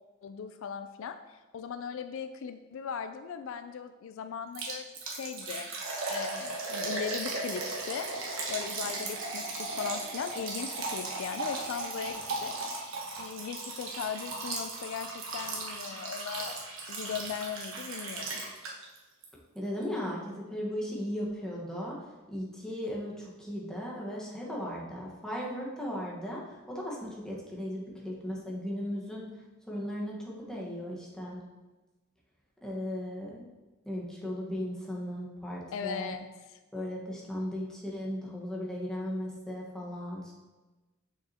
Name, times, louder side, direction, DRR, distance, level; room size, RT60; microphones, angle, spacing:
voice 1, 0.2-5.7 6.1-12.6 13.2-16.6 16.9-18.4 35.7-36.3, left 7 dB, 70° left, 9 dB, 0.3 m, -38 dB
Liquid, 4.6-19.0 19.2-19.3 19.8-19.9, right 3 dB, 70° right, 1.2 m, -36 dB
voice 2, 19.5-29.3 29.7-31.5 32.6-33.5 33.8-36.1 36.7-40.3, equal, 5° left, -4 dB, 1.3 m, -37 dB
6.8 x 6.1 x 2.8 m, 1.2 s
head